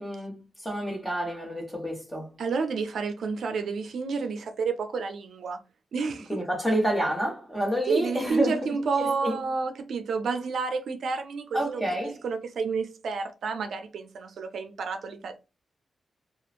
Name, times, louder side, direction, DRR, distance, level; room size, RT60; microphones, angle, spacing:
voice 1, 0.0-2.3 6.3-8.7 9.0-9.4 11.5-12.2, right 1 dB, 5° left, 1.3 m, -29 dB
voice 2, 2.4-5.6 5.9-6.4 7.9-11.9 12.2-15.4, right 4 dB, 80° right, 0.4 m, -30 dB
2.9 x 2.4 x 2.5 m
cardioid pair, 95°, 0 cm